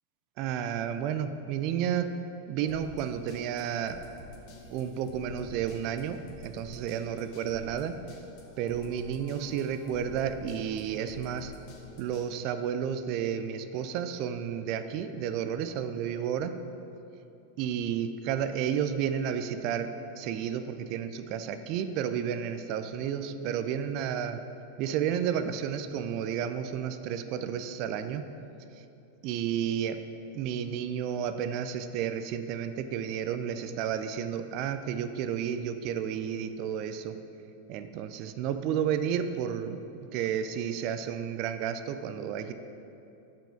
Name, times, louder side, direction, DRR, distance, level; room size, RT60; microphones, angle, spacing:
voice 1, 0.4-2.2 2.5-4.0 4.7-7.9 8.6-11.5 12.0-16.5 17.6-19.9 20.2-24.4 24.8-28.2 28.7-28.8 29.2-30.0 30.3-37.2 37.7-39.8 40.1-42.5, right 8 dB, 40° right, 10 dB, 0.4 m, -31 dB
sound 1, 2.7-12.3, left 1 dB, 45° left, 1.3 m, -49 dB
7.0 x 5.5 x 5.8 m, 2.8 s
figure-of-eight pair, 90°, 0 cm